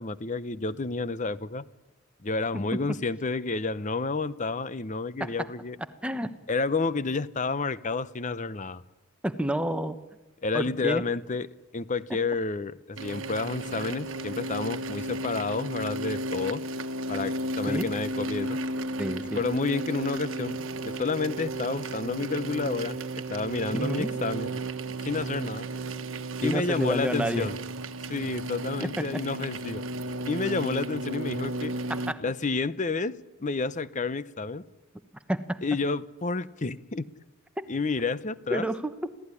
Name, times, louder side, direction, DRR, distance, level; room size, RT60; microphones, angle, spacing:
voice 1, 0.0-1.6 2.2-5.8 6.5-8.8 10.4-11.5 11.7-16.6 17.1-18.6 19.3-20.6 20.8-23.0 23.3-24.6 25.0-25.7 26.4-27.6 28.1-29.8 30.3-31.7 32.2-34.6 35.6-37.1 37.7-38.7, left 3 dB, 35° left, 16 dB, 0.8 m, -30 dB
voice 2, 9.2-10.0 10.5-11.0 17.7-17.8 19.0-19.4 23.7-24.1 26.4-27.5 28.8-28.9 31.9-32.2 35.3-35.6 37.6-37.7 38.5-39.1, equal, 5° right, 9 dB, 1.1 m, -29 dB
sound 1, 13.0-32.1, right 2 dB, 70° right, 1.3 m, -34 dB
27.5 x 16.5 x 9.9 m, 1.2 s
head